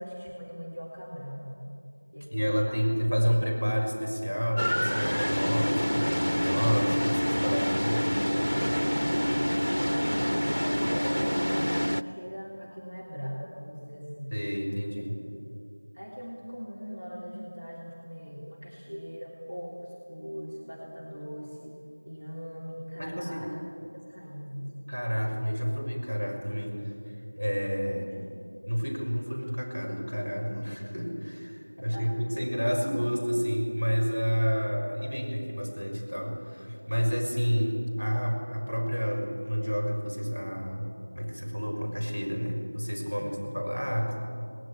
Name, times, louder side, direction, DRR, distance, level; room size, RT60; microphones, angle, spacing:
voice 1, 0.0-1.6 2.1-3.4 7.0-9.6 10.5-14.4 15.9-21.8 22.0-23.7 24.0-24.8 27.9-28.6 31.9-32.1 43.0-43.7, equal, 40° right, -5 dB, 3.0 m, -41 dB
voice 2, 2.3-8.1 14.3-15.1 23.0-23.4 24.9-28.1 28.7-44.2, equal, 70° right, 1 dB, 6.1 m, -30 dB
sound 1, 4.6-12.0, equal, 75° left, 0.6 m, -27 dB
19.0 x 18.5 x 9.7 m, 2.5 s
figure-of-eight pair, 180°, 0 cm